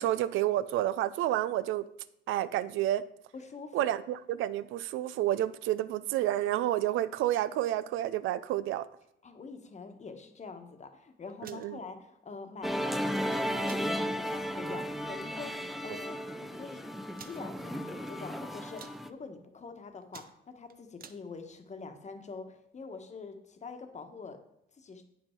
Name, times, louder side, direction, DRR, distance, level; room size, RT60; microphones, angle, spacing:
voice 1, 0.0-1.8 2.3-3.0 3.7-8.9 11.4-11.8, right 13 dB, 90° right, 16 dB, 0.4 m, -30 dB
voice 2, 3.3-3.9 9.2-16.8 17.2-24.4 24.8-25.0, left 4 dB, 35° left, 6 dB, 1.1 m, -45 dB
sound 1, 11.3-11.7 12.9-13.2 13.6-13.9 14.4-14.5 14.8-15.0 15.8-16.1 17.1-17.4 18.0-18.3 18.6-19.0 19.5-19.7 20.0-21.2, right 7 dB, 50° right, 0.6 m, -50 dB
Musical instrument, 12.6-19.1, equal, ahead, 0.5 m, -34 dB
8.6 x 5.6 x 4.4 m, 0.78 s
cardioid pair, 90°, 20 cm